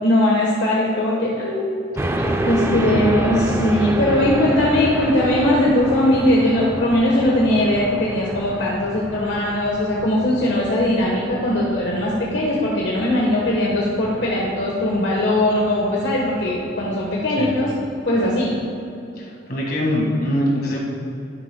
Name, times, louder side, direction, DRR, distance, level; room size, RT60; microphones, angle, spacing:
voice 1, 0.0-1.8 2.4-17.7 18.0-18.6, left 1 dB, 70° left, -4 dB, 1.2 m, -20 dB
voice 2, 1.9-2.9 17.4-17.6 19.2-20.8, left 1 dB, 50° left, -3 dB, 1.8 m, -24 dB
sound 1, 2.0-18.6, right 1 dB, 15° right, 0.3 m, -29 dB
11.5 x 9.7 x 2.2 m, 2.7 s
head